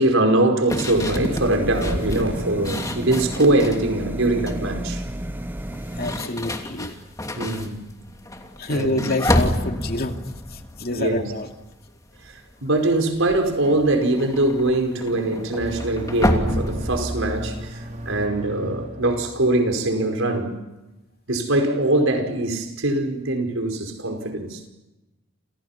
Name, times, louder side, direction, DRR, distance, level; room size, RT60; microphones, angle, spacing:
voice 1, 0.0-5.0 7.4-7.8 8.7-9.0 10.9-11.2 12.3-20.5 21.3-24.7, right 2 dB, 75° right, 5.1 m, -22 dB
sound 1, 0.7-3.9 4.2-4.7 5.6-11.8 12.1-12.5 12.8-18.3, left 1 dB, 15° left, 2.8 m, -29 dB
sound 2, 0.9-6.2, right 1 dB, 10° right, 0.8 m, -32 dB
voice 2, 6.0-6.9 8.6-10.2 10.5-11.5, left 2 dB, 50° left, 2.6 m, -27 dB
sound 3, 15.6-19.7, right 1 dB, 40° right, 2.9 m, -35 dB
29.5 x 29.0 x 5.9 m
head